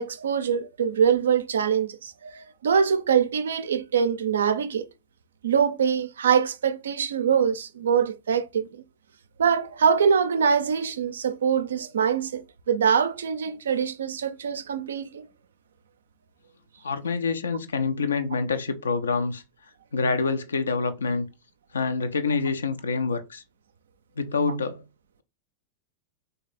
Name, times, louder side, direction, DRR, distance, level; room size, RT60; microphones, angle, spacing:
voice 1, 0.0-4.9 5.4-8.8 9.4-15.3, right 7 dB, 65° right, 0.4 m, -24 dB
voice 2, 16.8-19.4 19.9-21.3 21.7-23.4 24.2-24.8, left 4 dB, 70° left, 0.5 m, -26 dB
3.2 x 2.7 x 3.8 m
figure-of-eight pair, 90°, 0 cm